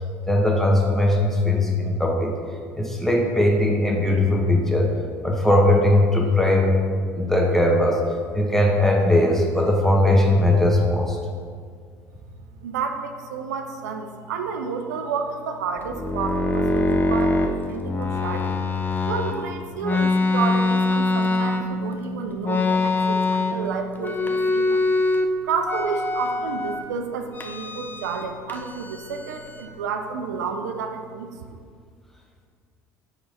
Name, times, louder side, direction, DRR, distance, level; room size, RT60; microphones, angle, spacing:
voice 1, 0.3-2.4 2.8-5.0 5.2-6.7 7.1-8.0 8.3-11.2, left 1 dB, 5° left, -1 dB, 1.2 m, -19 dB
voice 2, 12.6-18.5 19.1-24.8 25.4-31.6, right 5 dB, 80° right, 5 dB, 0.4 m, -30 dB
sound 1, 15.8-19.4 19.8-21.9 22.4-23.7 24.0-25.3 25.6-26.8 27.3-28.2 28.5-29.7, left 2 dB, 20° left, 0.7 m, -24 dB
5.3 x 4.6 x 4.2 m, 2.1 s
hypercardioid pair, 60°, 9 cm